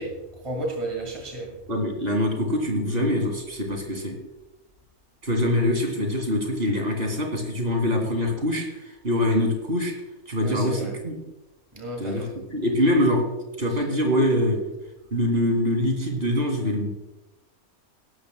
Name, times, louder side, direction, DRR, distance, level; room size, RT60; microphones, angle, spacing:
voice 1, 0.0-1.5 10.4-10.9 11.7-12.3 13.7-13.8, right 1 dB, 20° right, 0 dB, 2.1 m, -33 dB
voice 2, 1.7-4.1 5.2-8.8 9.0-9.9 10.3-11.2 12.0-13.2 13.6-14.6 15.1-16.9, left 1 dB, 40° right, 1 dB, 2.7 m, -24 dB
18.0 x 12.5 x 2.2 m, 1.0 s
omnidirectional pair, 1.5 m